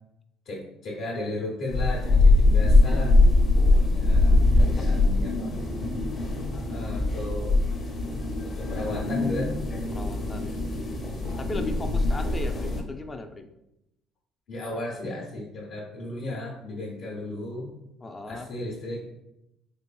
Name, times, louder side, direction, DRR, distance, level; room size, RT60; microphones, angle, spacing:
voice 1, 0.4-3.1 3.7-5.6 6.7-7.5 8.4-9.6 11.5-12.1 14.5-17.7 18.3-19.1, left 2 dB, 65° left, -6 dB, 0.9 m, -35 dB
sound 1, 1.7-12.8, left 2 dB, 40° left, 0.7 m, -22 dB
voice 2, 3.5-3.9 4.8-4.9 9.9-10.6 11.4-13.5 18.0-18.5, left 3 dB, 20° left, 7 dB, 0.3 m, -38 dB
3.8 x 3.3 x 2.2 m, 0.86 s
cardioid pair, 120°, 0 cm